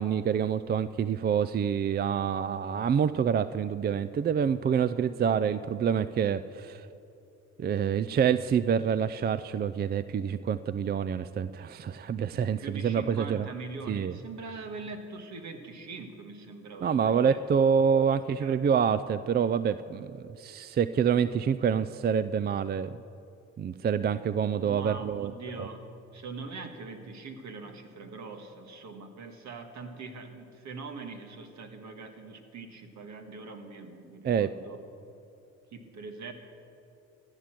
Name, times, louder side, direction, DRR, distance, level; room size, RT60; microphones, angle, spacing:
voice 1, 0.0-6.9 7.6-13.5 13.9-14.2 16.8-22.9 23.6-25.7 34.2-34.5, right 7 dB, 35° right, 14 dB, 0.4 m, -27 dB
voice 2, 12.6-17.4 18.4-18.6 24.5-34.8 35.7-36.3, right 4 dB, 65° right, 6 dB, 1.7 m, -42 dB
14.5 x 10.5 x 7.6 m, 2.8 s
cardioid pair, 90°, 30 cm